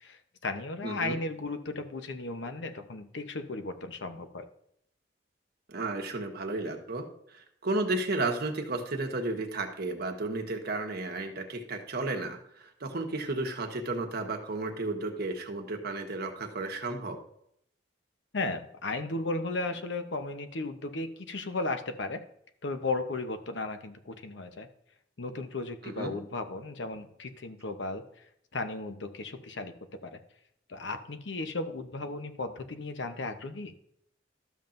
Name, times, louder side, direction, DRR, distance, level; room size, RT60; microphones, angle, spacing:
voice 1, 0.0-4.5 18.3-22.2 22.6-24.7 25.2-29.7 30.0-30.2 30.7-33.7, left 2 dB, 70° left, 8 dB, 0.9 m, -35 dB
voice 2, 0.8-1.2 5.7-17.2 25.8-26.2, right 2 dB, 60° right, 3 dB, 1.3 m, -33 dB
12.5 x 7.2 x 2.6 m, 0.71 s
head